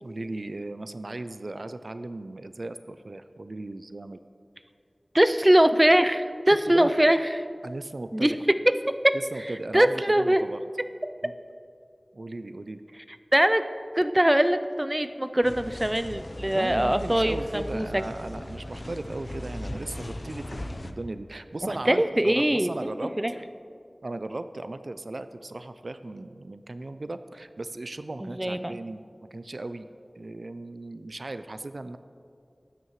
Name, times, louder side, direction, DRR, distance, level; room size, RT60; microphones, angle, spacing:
voice 1, 0.0-4.2 6.5-7.1 7.6-8.4 9.3-10.6 11.2-11.3 12.1-12.8 16.5-23.1 24.0-29.0 29.3-29.9 30.2-32.0, right 2 dB, 75° right, 11 dB, 0.4 m, -37 dB
voice 2, 5.1-7.4 8.1-8.3 8.7-9.1 9.7-10.4 13.3-13.6 13.9-18.0 21.9-22.7 23.2-23.3 28.2-28.7, right 1 dB, 20° right, 10 dB, 0.5 m, -22 dB
sound 1, 15.4-20.9, left 1 dB, 55° left, 0.7 m, -38 dB
18.5 x 9.3 x 3.2 m, 2.4 s
wide cardioid pair, 45°, 0 cm